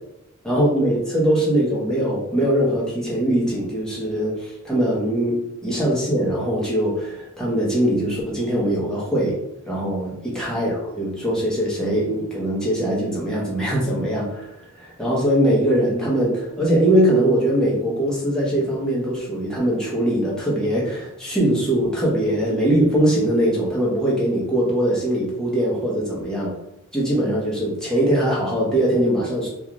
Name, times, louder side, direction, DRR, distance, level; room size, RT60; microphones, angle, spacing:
voice 1, 0.4-9.4 9.7-14.5 14.8-26.6 26.9-29.5, right 1 dB, 5° left, -6 dB, 0.8 m, -21 dB
2.5 x 2.3 x 3.0 m, 0.86 s
head